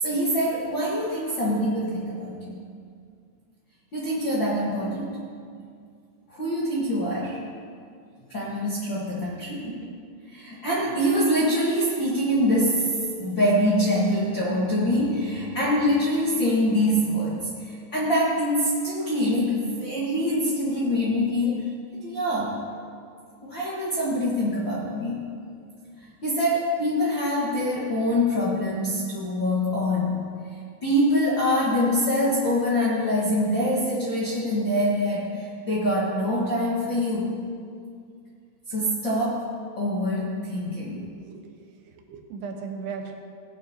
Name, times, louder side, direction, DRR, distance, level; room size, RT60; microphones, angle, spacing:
voice 1, 0.0-2.5 3.9-5.1 6.3-7.4 8.3-9.6 10.3-21.6 22.0-22.7 23.4-25.2 26.0-30.2 30.8-37.3 38.7-39.5 39.8-41.0, equal, 60° left, -7 dB, 1.2 m, -24 dB
voice 2, 41.0-41.4 42.1-43.1, right 5 dB, 90° right, 3 dB, 3.0 m, -36 dB
17.5 x 9.6 x 2.8 m, 2.3 s
omnidirectional pair, 4.5 m